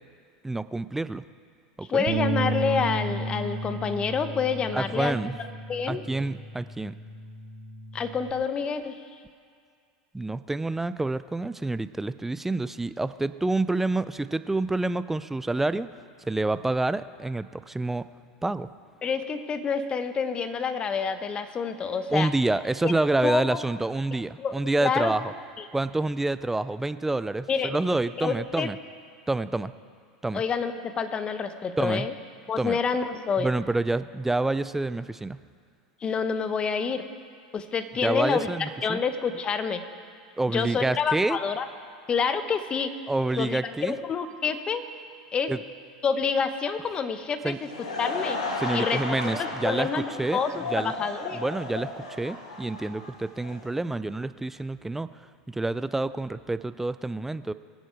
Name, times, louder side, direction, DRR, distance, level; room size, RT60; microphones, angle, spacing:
voice 1, 0.4-1.3 1.8-2.1 4.7-5.4 5.9-7.0 10.1-15.9 16.3-18.0 18.4-18.7 22.1-25.3 25.7-28.8 29.3-29.7 30.2-30.4 31.8-32.1 32.6-32.8 33.4-35.4 38.0-39.0 40.4-41.4 43.1-43.9 45.5-45.6 47.4-47.6 48.6-50.4 50.7-50.9 51.3-55.1 55.5-57.5, right 2 dB, 10° right, 14 dB, 0.4 m, -28 dB
voice 2, 1.9-5.2 5.7-6.0 7.9-9.0 19.0-22.3 22.8-22.9 23.2-23.6 24.4-24.5 24.8-25.1 25.6-25.7 27.5-27.7 28.2-28.7 30.3-32.1 32.5-33.5 36.0-37.0 37.5-38.5 38.8-39.8 40.5-41.7 42.1-42.9 43.4-44.8 45.3-45.5 46.0-47.7 48.0-48.4 48.7-49.0 49.3-51.4, left 6 dB, 30° left, 10 dB, 1.1 m, -28 dB
Bass guitar, 2.1-8.3, right 2 dB, 60° right, 1.2 m, -33 dB
Laughter / Crowd, 47.4-53.7, left 2 dB, 90° left, 2.0 m, -34 dB
22.5 x 8.1 x 4.7 m, 2.2 s
hypercardioid pair, 95°, 3 cm